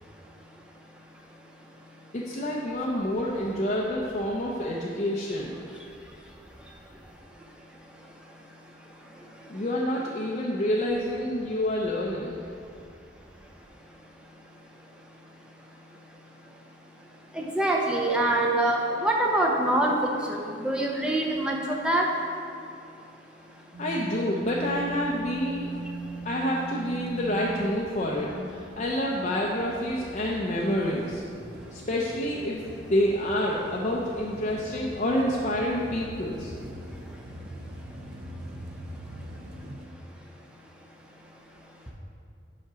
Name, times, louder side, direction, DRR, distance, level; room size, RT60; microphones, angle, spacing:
voice 1, 2.1-5.6 9.5-12.4 23.8-25.7 26.2-31.2 31.7-32.6 32.9-36.5, left 1 dB, 40° left, -3 dB, 0.5 m, -28 dB
voice 2, 17.3-22.1, right 1 dB, 5° right, -1 dB, 0.5 m, -25 dB
sound 1, 23.7-39.9, right 2 dB, 55° right, 0.5 m, -41 dB
5.8 x 5.3 x 5.0 m, 2.5 s
head